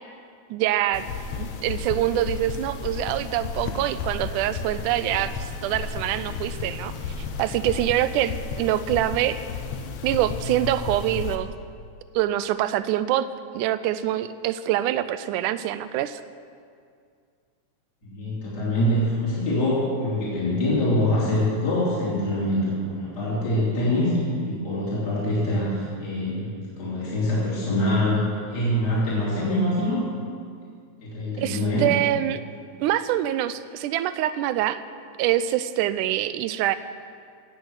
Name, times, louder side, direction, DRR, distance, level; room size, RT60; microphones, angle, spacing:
voice 1, 0.5-1.0 1.3-7.1 7.4-9.4 10.0-11.5 12.2-13.3 13.5-16.2 31.4-32.4 32.8-34.8 35.2-36.8, right 13 dB, 85° right, 14 dB, 2.1 m, -25 dB
sound 1, 0.9-11.4, left 5 dB, 70° left, 2.0 m, -33 dB
voice 2, 18.0-26.5 26.8-28.2 28.5-30.0 31.0-31.9, left 1 dB, 35° left, -8 dB, 3.5 m, -24 dB
16.5 x 6.6 x 7.9 m, 2.2 s
omnidirectional pair, 3.5 m